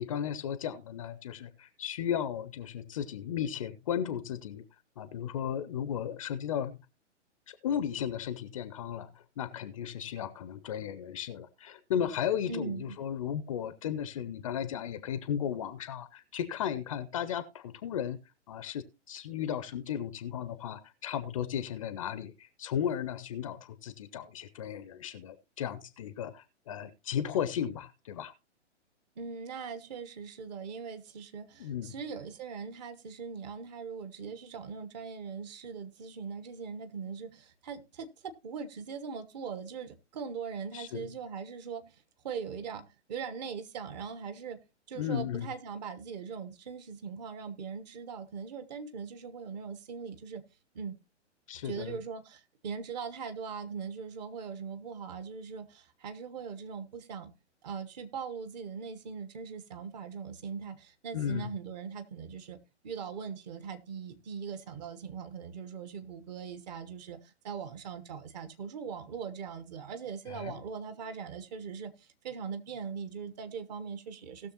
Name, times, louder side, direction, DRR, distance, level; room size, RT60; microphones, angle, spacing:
voice 1, 0.0-4.6 5.0-6.8 7.5-18.2 18.5-28.3 31.6-31.9 40.7-41.1 44.9-45.5 51.5-52.0 61.1-61.5 70.3-70.6, left 9 dB, 30° left, 0.6 m, -35 dB
voice 2, 12.5-13.0 29.2-42.0 42.2-44.6 44.9-50.4 50.7-51.0 51.6-57.3 57.6-74.5, right 6 dB, 35° right, 1.1 m, -40 dB
18.0 x 6.5 x 2.8 m
figure-of-eight pair, 120°, 36 cm